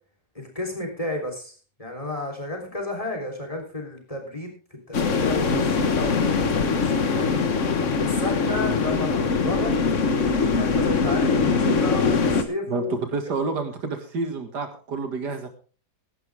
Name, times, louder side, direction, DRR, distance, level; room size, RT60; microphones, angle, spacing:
voice 1, 0.4-7.3 8.0-9.7 10.5-12.9, left 1 dB, 20° left, 2 dB, 3.6 m, -32 dB
sound 1, 4.9-12.4, left 4 dB, 50° left, 1.5 m, -22 dB
voice 2, 5.4-5.7 12.7-15.5, right 4 dB, 80° right, 7 dB, 2.5 m, -29 dB
16.5 x 11.5 x 3.5 m, 0.37 s
omnidirectional pair, 1.8 m